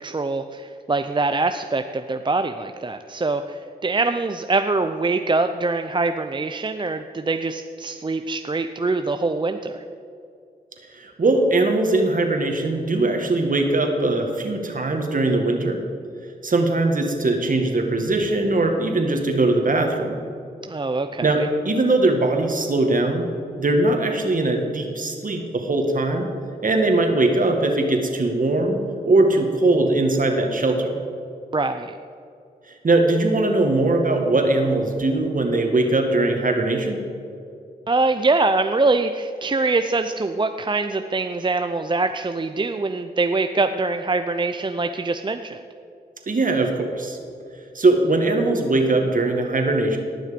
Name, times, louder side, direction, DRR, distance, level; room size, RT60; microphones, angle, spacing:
voice 1, 0.0-9.8 20.7-21.5 31.5-32.0 37.9-45.6, right 3 dB, 25° right, 8 dB, 0.6 m, -24 dB
voice 2, 10.9-15.8 16.4-20.2 21.2-23.3 23.6-26.3 26.6-28.8 29.1-31.0 32.8-37.0 46.3-47.2 47.8-50.0, right 2 dB, 50° right, 4 dB, 1.9 m, -20 dB
18.5 x 6.3 x 5.2 m, 2.5 s
cardioid pair, 50°, 17 cm